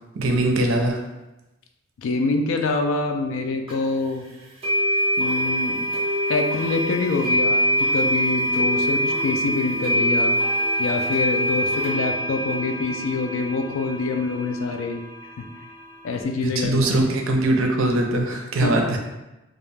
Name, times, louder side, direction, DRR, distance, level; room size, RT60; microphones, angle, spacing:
voice 1, 0.1-1.0 16.6-19.0, right 1 dB, 90° right, 2 dB, 0.5 m, -21 dB
voice 2, 2.0-4.3 5.2-5.9 6.3-10.4 10.8-15.0 15.4-15.5 16.0-17.1 18.6-18.9, left 3 dB, 80° left, 5 dB, 0.3 m, -25 dB
sound 1, 3.7-3.8 4.6-16.2, equal, 30° right, 0.7 m, -24 dB
2.3 x 2.2 x 3.1 m, 1.0 s
head